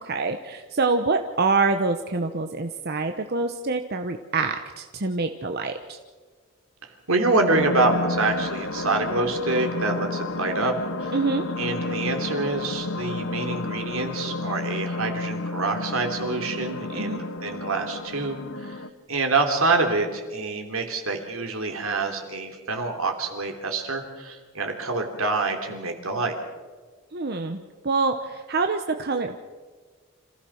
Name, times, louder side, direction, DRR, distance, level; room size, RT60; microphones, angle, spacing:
voice 1, 0.0-6.0 11.1-11.5 16.9-17.2 27.1-29.5, right 3 dB, 50° right, 6 dB, 0.9 m, -26 dB
voice 2, 6.8-10.7 11.0-11.1 11.6-18.8 19.1-26.3, right 3 dB, 80° right, 4 dB, 3.2 m, -26 dB
sound 1, 7.5-18.9, left 2 dB, 70° left, 1.0 m, -31 dB
26.5 x 15.5 x 6.4 m, 1.4 s
head